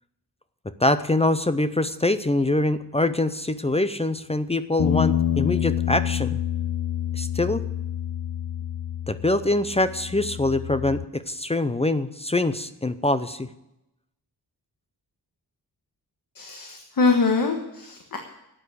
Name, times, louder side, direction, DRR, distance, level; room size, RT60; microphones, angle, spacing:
voice 1, 0.8-6.4 7.1-7.6 9.1-13.5, left 2 dB, 15° left, 12 dB, 0.5 m, -24 dB
sound 1, 4.8-11.0, left 10 dB, 75° left, 0.7 m, -27 dB
voice 2, 16.3-18.2, left 4 dB, 55° left, 3 dB, 1.5 m, -23 dB
12.5 x 9.0 x 8.4 m, 0.89 s
wide cardioid pair, 120°, 40 cm